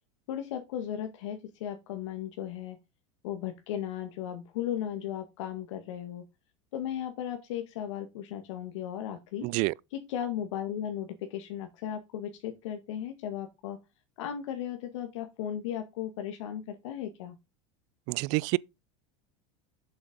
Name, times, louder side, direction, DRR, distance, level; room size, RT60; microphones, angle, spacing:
voice 1, 0.3-2.8 3.2-6.2 6.7-9.5 9.9-13.8 14.2-17.4, left 10 dB, 80° left, 1.9 m, -36 dB
voice 2, 9.4-9.7 18.1-18.6, right 26 dB, 55° right, 0.4 m, -27 dB
7.8 x 6.0 x 5.3 m
supercardioid pair, 120°, 15 cm